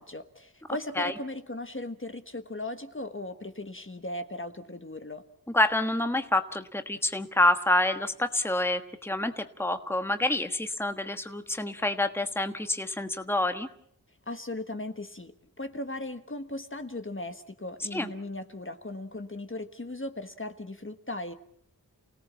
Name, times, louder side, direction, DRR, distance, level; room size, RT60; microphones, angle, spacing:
voice 1, 0.0-5.2 14.3-15.3 15.6-21.3, left 2 dB, 35° left, 8 dB, 1.4 m, -37 dB
voice 2, 5.5-13.7 17.9-18.1, left 1 dB, 5° left, 8 dB, 1.3 m, -27 dB
29.0 x 17.5 x 7.3 m, 0.67 s
wide cardioid pair, 55°, 36 cm